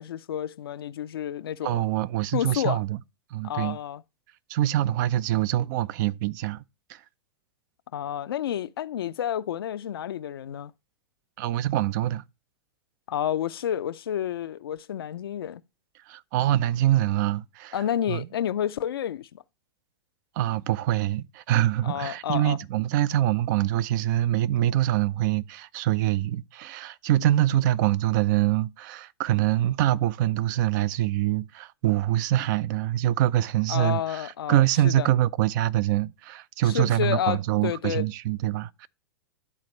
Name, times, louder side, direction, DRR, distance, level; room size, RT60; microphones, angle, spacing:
voice 1, 0.0-1.8 2.3-2.8 3.4-4.0 7.9-10.7 13.1-15.6 17.7-19.4 21.8-22.6 33.7-35.1 36.6-38.1, left 10 dB, 75° left, 0.5 m, -30 dB
voice 2, 1.6-3.0 3.3-3.8 4.5-6.6 6.9-7.0 11.4-12.2 16.1-17.8 18.1-18.3 20.4-38.9, right 13 dB, 50° right, 0.5 m, -24 dB
11.0 x 4.1 x 3.1 m
hypercardioid pair, 110°, 12 cm